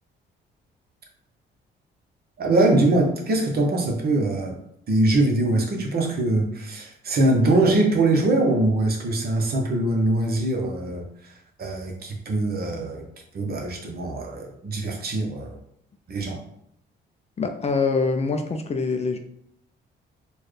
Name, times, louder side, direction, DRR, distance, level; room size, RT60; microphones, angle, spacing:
voice 1, 2.4-4.6 4.9-11.1 11.6-13.0 13.3-15.6 16.1-16.4, right 2 dB, 50° right, 1 dB, 1.0 m, -22 dB
voice 2, 17.4-19.2, left 4 dB, 35° left, 6 dB, 0.4 m, -24 dB
4.2 x 2.3 x 3.2 m, 0.70 s
cardioid pair, 90°, 20 cm